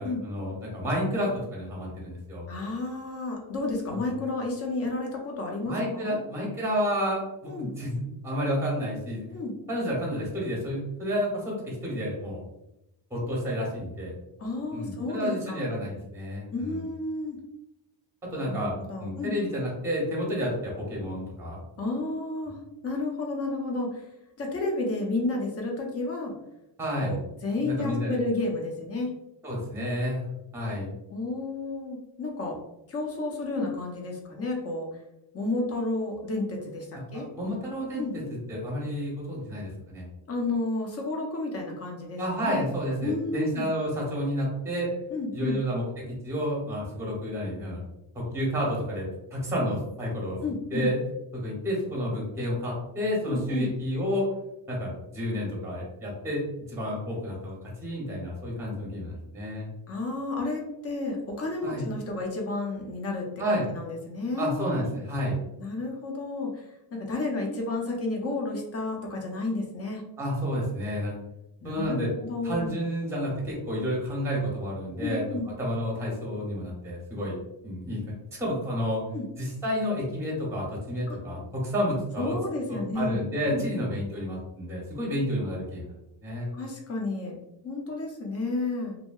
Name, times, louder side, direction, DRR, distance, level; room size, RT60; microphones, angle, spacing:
voice 1, 0.0-2.4 3.9-4.1 5.7-9.3 9.7-12.4 13.1-14.1 14.7-16.8 18.3-21.6 26.8-27.2 27.6-28.2 29.4-30.2 30.5-30.9 36.9-38.2 38.5-40.0 42.2-44.9 45.3-47.8 48.1-50.4 50.7-51.0 51.3-54.3 54.7-57.6 57.8-59.7 61.6-61.8 63.4-63.7 64.4-65.4 70.2-71.1 71.6-72.1 72.4-75.3 75.6-77.4 77.6-79.0 79.4-82.4 82.7-85.9 86.2-86.5, equal, 5° right, -4 dB, 0.8 m, -30 dB
voice 2, 2.5-6.2 7.4-7.7 9.3-9.5 14.4-15.7 16.5-17.4 18.3-19.3 21.8-24.1 24.4-26.3 27.0-27.2 27.4-29.1 31.1-32.6 32.9-34.9 35.3-37.3 38.0-38.1 40.3-42.6 43.0-43.7 45.1-45.6 50.4-50.9 53.2-53.7 59.9-64.7 65.6-70.0 71.6-72.8 75.0-75.5 79.1-79.3 81.1-81.2 82.2-83.2 83.5-83.6 86.5-87.4 87.6-89.0, left 2 dB, 30° left, 0 dB, 0.6 m, -31 dB
2.8 x 2.1 x 2.3 m, 0.91 s
cardioid pair, 130°, 46 cm